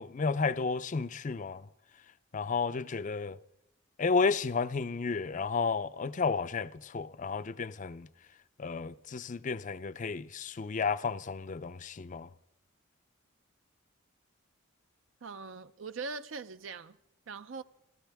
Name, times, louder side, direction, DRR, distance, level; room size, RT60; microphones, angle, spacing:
voice 1, 0.0-1.7 2.3-3.4 4.0-8.1 8.6-12.3, left 4 dB, 40° left, 0.5 m, -32 dB
voice 2, 15.2-17.0 17.3-17.6, right 4 dB, 65° right, 0.5 m, -41 dB
29.5 x 14.0 x 3.5 m
head